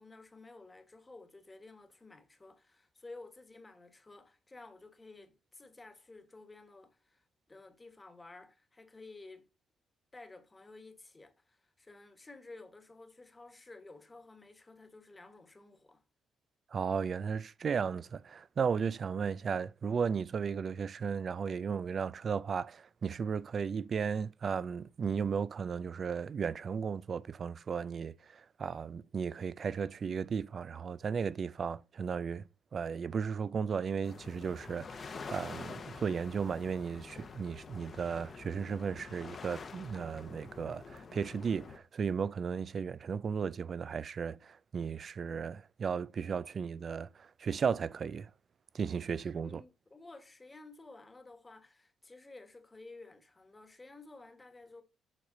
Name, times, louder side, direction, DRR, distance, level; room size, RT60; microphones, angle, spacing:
voice 1, 0.0-9.5 10.1-16.0 49.4-54.8, left 3 dB, 20° left, 1.4 m, -53 dB
voice 2, 16.7-48.3 48.7-49.6, right 6 dB, 50° right, 0.4 m, -35 dB
sound 1, 34.0-41.8, left 5 dB, 45° left, 0.9 m, -47 dB
7.5 x 4.7 x 3.8 m
cardioid pair, 85°, 0 cm